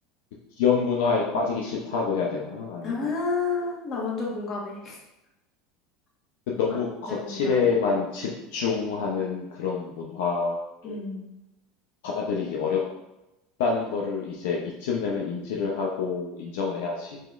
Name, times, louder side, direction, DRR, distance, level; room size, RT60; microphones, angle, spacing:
voice 1, 0.6-3.0 6.5-11.0 12.0-12.8 13.6-17.2, left 5 dB, 80° left, -2 dB, 0.6 m, -27 dB
voice 2, 2.8-5.0 7.1-7.6 10.8-11.3, left 4 dB, 40° left, -3 dB, 1.4 m, -30 dB
5.0 x 2.9 x 2.5 m, 0.94 s
supercardioid pair, 110°, 0 cm